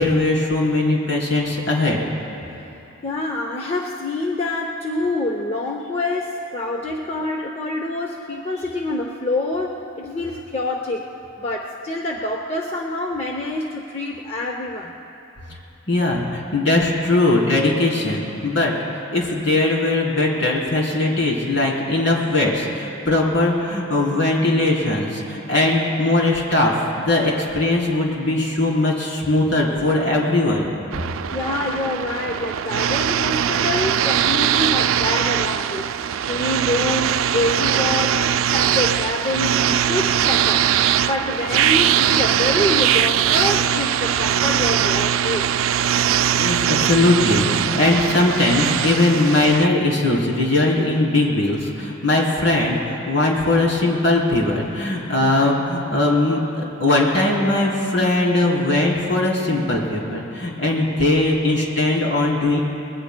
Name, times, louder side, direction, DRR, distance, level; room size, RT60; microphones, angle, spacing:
voice 1, 0.0-2.0 15.9-18.7 19.1-30.7 46.4-62.6, left 2 dB, 60° left, -3 dB, 3.3 m, -20 dB
voice 2, 3.0-11.1 11.4-15.0 31.3-35.9 36.2-40.7 41.0-45.5, left 2 dB, 30° left, 1 dB, 0.6 m, -26 dB
sound 1, 30.9-49.7, right 9 dB, 80° right, 0.4 m, -21 dB
26.0 x 21.0 x 2.2 m, 2.9 s
head